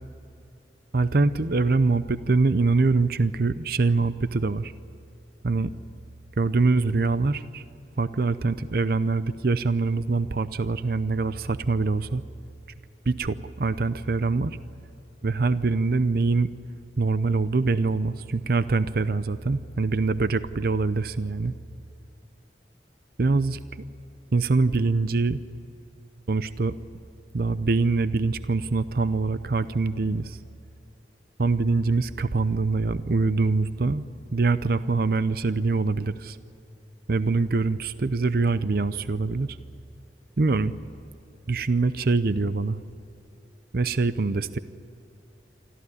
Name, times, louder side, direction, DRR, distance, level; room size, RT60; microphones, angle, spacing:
voice 1, 0.9-4.7 5.4-5.7 6.4-7.6 8.0-12.2 13.1-14.6 15.2-16.5 17.0-21.5 23.2-23.6 24.3-25.4 26.3-26.7 27.3-30.4 31.4-34.0 34.3-36.4 37.1-39.6 40.4-40.7 41.5-42.8 43.7-44.6, right 3 dB, 55° right, 13 dB, 0.6 m, -24 dB
25.5 x 14.5 x 9.8 m, 2.7 s
head